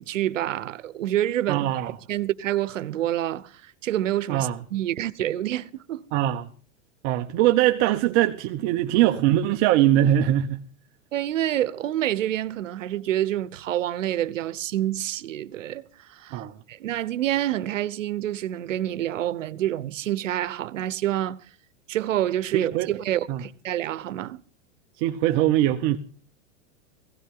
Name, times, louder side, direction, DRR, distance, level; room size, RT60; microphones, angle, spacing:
voice 1, 0.0-1.7 2.1-6.1 11.1-16.4 16.7-21.4 21.9-24.4, right 12 dB, 90° right, 1.0 m, -27 dB
voice 2, 1.5-1.9 4.3-4.6 6.1-6.4 7.0-10.6 16.3-16.5 22.5-22.9 23.3-23.4 25.0-26.0, right 13 dB, 40° right, 1.1 m, -22 dB
16.5 x 16.0 x 3.9 m
supercardioid pair, 140°, 37 cm